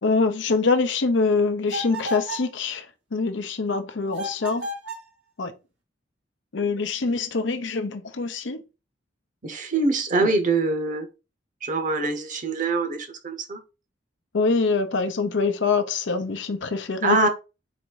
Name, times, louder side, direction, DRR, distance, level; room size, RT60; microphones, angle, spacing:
voice 1, 0.0-2.8 3.1-4.7 5.4-5.5 6.5-8.6 10.2-10.3 14.3-17.2, left 4 dB, 75° left, 0.7 m, -24 dB
sound 1, 1.7-2.5 4.1-5.1, equal, 80° right, 1.5 m, -33 dB
voice 2, 9.4-11.1 11.6-13.6 17.0-17.3, right 3 dB, 45° right, 0.9 m, -24 dB
4.1 x 2.6 x 4.6 m
head